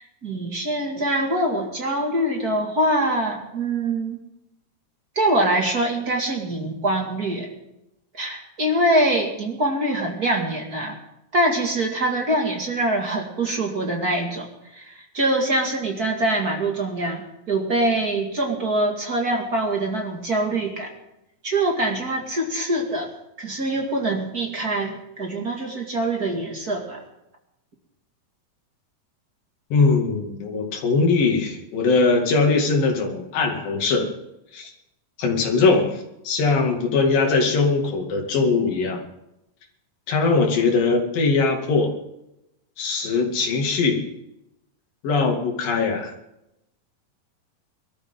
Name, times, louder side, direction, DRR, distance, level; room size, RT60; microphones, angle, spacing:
voice 1, 0.0-4.2 5.2-7.5 8.1-11.0 11.3-20.9 21.4-23.1 23.4-27.0, right 1 dB, 30° right, 1 dB, 2.0 m, -24 dB
voice 2, 29.7-34.1 34.5-34.7 35.2-39.1 40.1-41.9 42.8-44.1 45.0-46.1, left 4 dB, 80° left, 2 dB, 4.0 m, -21 dB
22.5 x 13.5 x 3.7 m, 0.88 s
omnidirectional pair, 4.0 m